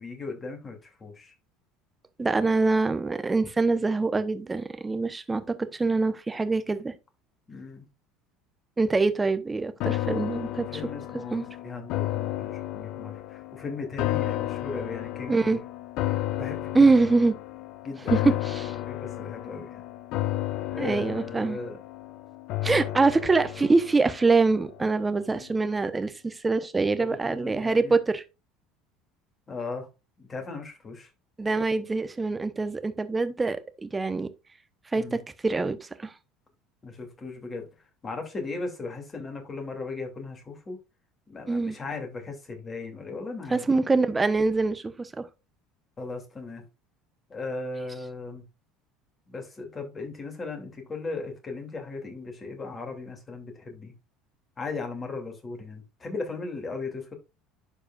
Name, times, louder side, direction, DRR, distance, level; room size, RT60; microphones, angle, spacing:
voice 1, 0.0-1.3 7.5-7.8 10.6-15.6 16.1-16.9 17.8-18.3 18.8-19.8 20.7-21.8 25.3-25.4 27.0-27.9 29.5-29.9 30.2-31.1 34.9-35.2 36.8-37.7 38.0-40.8 41.3-43.6 46.0-46.6 47.3-48.4 49.3-53.9 54.6-57.1, left 3 dB, 25° left, 2.8 m, -37 dB
voice 2, 2.2-6.9 8.8-10.8 11.3-11.4 15.3-15.6 16.7-17.3 18.1-18.7 20.8-21.6 22.6-28.2 31.4-34.3 34.9-36.1 41.5-41.8 43.5-45.3, right 3 dB, 20° right, 1.0 m, -24 dB
sound 1, 9.8-25.1 25.5-25.6, left 15 dB, 60° left, 0.6 m, -33 dB
11.5 x 4.8 x 2.5 m
hypercardioid pair, 70°, 0 cm